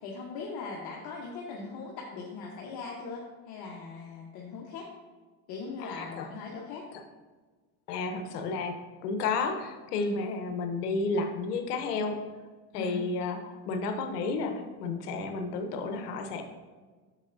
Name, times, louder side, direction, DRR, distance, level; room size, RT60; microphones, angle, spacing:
voice 1, 0.0-4.9 5.5-6.8 9.9-10.2 12.7-13.0, left 4 dB, 50° left, -2 dB, 1.2 m, -40 dB
voice 2, 5.8-6.2 7.9-8.8 9.0-12.2 12.7-16.4, left 3 dB, 85° left, 6 dB, 1.0 m, -32 dB
7.4 x 6.8 x 2.6 m, 1.4 s
supercardioid pair, 105°, 46 cm